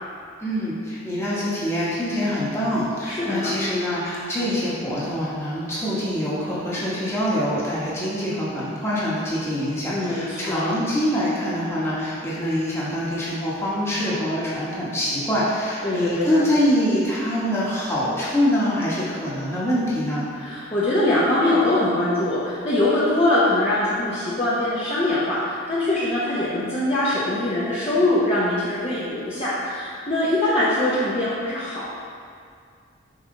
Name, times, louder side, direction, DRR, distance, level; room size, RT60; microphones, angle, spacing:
voice 1, 0.4-20.2, equal, 15° left, -9 dB, 1.2 m, -24 dB
voice 2, 3.1-3.5 9.9-10.7 15.8-16.4 20.3-31.9, left 1 dB, 30° left, -11 dB, 0.8 m, -22 dB
5.6 x 4.8 x 3.9 m, 2.2 s
head